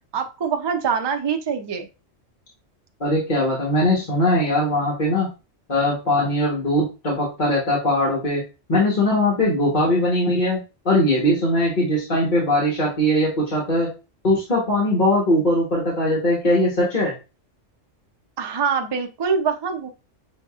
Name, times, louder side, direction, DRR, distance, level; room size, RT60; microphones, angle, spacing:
voice 1, 0.1-1.9 18.4-19.9, right 6 dB, 40° right, 4 dB, 0.3 m, -24 dB
voice 2, 3.0-5.3 5.7-8.4 8.7-13.9 14.2-17.1, left 1 dB, 40° left, -5 dB, 1.3 m, -20 dB
6.1 x 2.8 x 2.4 m, 0.29 s
omnidirectional pair, 1.3 m